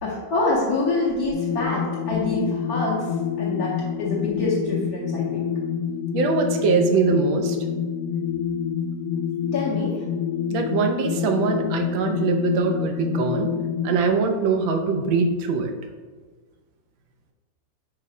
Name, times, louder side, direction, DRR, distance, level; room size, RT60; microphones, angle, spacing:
voice 1, 0.0-3.1 3.4-5.5 9.5-10.0, left 2 dB, 60° left, -6 dB, 1.1 m, -26 dB
sound 1, 1.3-14.0, left 7 dB, 85° left, 1.4 m, -27 dB
voice 2, 6.1-7.6 10.5-13.5 13.8-15.7, right 4 dB, 90° right, 4 dB, 1.4 m, -22 dB
5.5 x 2.0 x 4.7 m, 1.4 s
omnidirectional pair, 2.1 m